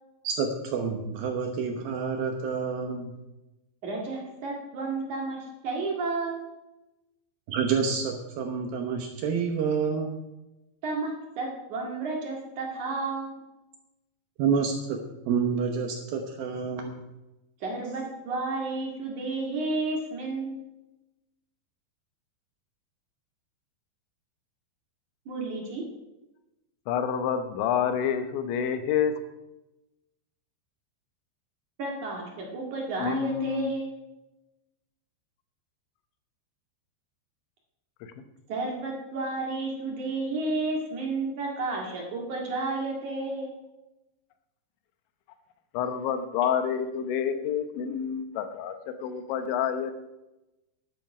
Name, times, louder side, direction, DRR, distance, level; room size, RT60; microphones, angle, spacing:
voice 1, 0.2-3.1 7.5-10.1 14.4-15.0 15.3-17.0, right 6 dB, 70° right, 3 dB, 2.5 m, -28 dB
voice 2, 3.8-5.4 5.6-6.5 10.8-13.4 17.6-20.6 25.3-25.8 31.8-33.9 38.5-43.5, right 3 dB, 50° right, -1 dB, 2.9 m, -31 dB
voice 3, 26.9-29.1 33.0-33.7 38.0-38.1 45.7-49.9, left 8 dB, 85° left, 9 dB, 3.3 m, -28 dB
12.0 x 10.5 x 4.9 m, 1.0 s
omnidirectional pair, 5.2 m